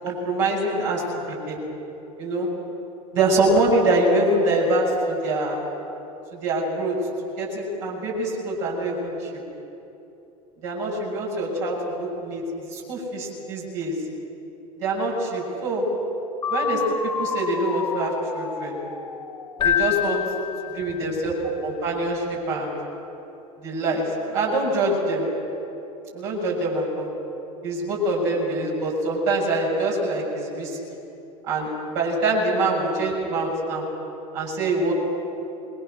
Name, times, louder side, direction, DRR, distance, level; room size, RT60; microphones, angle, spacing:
voice 1, 0.0-1.6 2.2-2.5 3.1-5.6 6.3-7.0 7.2-9.3 10.6-13.9 14.8-15.9 16.5-18.8 19.6-20.2 20.6-21.3 21.6-22.7 23.6-25.3 26.1-27.1 27.6-30.8 31.4-33.8 34.3-34.9, right 2 dB, 55° right, -3 dB, 6.8 m, -24 dB
sound 1, 16.4-20.3, left 6 dB, 80° left, 1.0 m, -31 dB
Keyboard (musical), 19.6-21.4, left 10 dB, 25° left, 1.9 m, -26 dB
26.0 x 22.0 x 6.5 m, 2.9 s
figure-of-eight pair, 85°, 19 cm